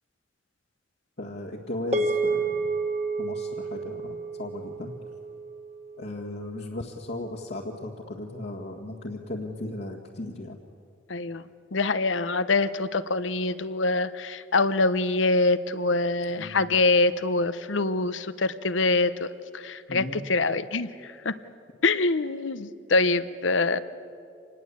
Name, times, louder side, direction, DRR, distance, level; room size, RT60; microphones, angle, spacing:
voice 1, 1.2-2.7 3.2-4.9 6.0-10.6 16.4-16.8 19.9-20.2, left 1 dB, 60° left, -3 dB, 1.9 m, -36 dB
sound 1, 1.9-6.4, right 3 dB, 35° right, 1.7 m, -30 dB
voice 2, 11.1-11.4 11.7-21.4 21.8-23.8, left 3 dB, 75° left, 14 dB, 0.9 m, -25 dB
26.5 x 20.0 x 8.5 m, 2.4 s
head